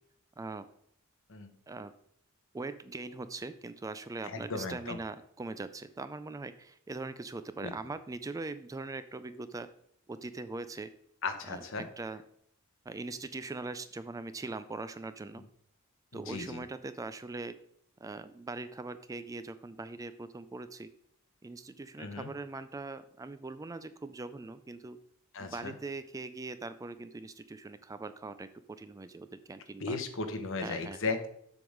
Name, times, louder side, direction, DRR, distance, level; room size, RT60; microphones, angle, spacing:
voice 1, 0.4-0.7 1.7-1.9 2.5-9.7 10.1-10.9 11.5-12.2 12.9-15.4 16.1-17.6 18.0-20.9 21.4-25.0 25.4-30.0 30.6-31.0, right 3 dB, 15° right, 12 dB, 0.3 m, -41 dB
voice 2, 4.2-5.0 7.6-7.7 11.2-11.8 16.1-16.6 22.0-22.3 25.3-25.7 29.8-31.3, left 3 dB, 65° left, 7 dB, 1.0 m, -36 dB
7.7 x 3.6 x 6.4 m, 0.70 s
head